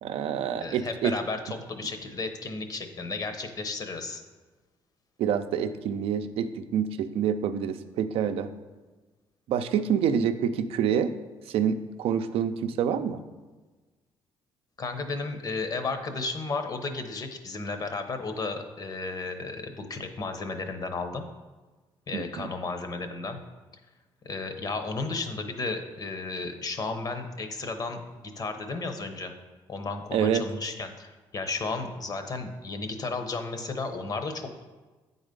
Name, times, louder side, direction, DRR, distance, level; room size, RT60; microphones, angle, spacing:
voice 1, 0.0-1.1 5.2-8.5 9.5-11.1 11.5-13.2 22.1-22.5 30.1-30.4, right 8 dB, 80° right, 9 dB, 0.5 m, -27 dB
voice 2, 0.5-4.2 14.8-21.2 22.1-23.4 24.2-29.3 29.7-34.6, left 3 dB, 40° left, 7 dB, 0.9 m, -33 dB
8.8 x 4.0 x 5.2 m, 1.3 s
cardioid pair, 100°, 10 cm